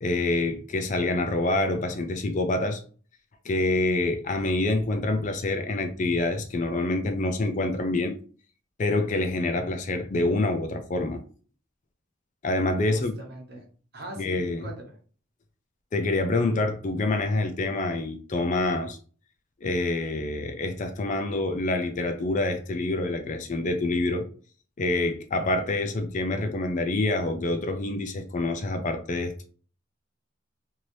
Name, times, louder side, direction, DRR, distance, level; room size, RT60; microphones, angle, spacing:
voice 1, 0.0-2.8 3.4-8.2 8.8-11.2 12.4-13.2 14.2-14.6 15.9-19.0 19.6-24.2 24.8-29.3, left 2 dB, 40° left, 0.4 m, -26 dB
voice 2, 12.8-13.6 13.9-15.0, right 1 dB, 55° right, 1.1 m, -41 dB
3.1 x 2.7 x 2.7 m
head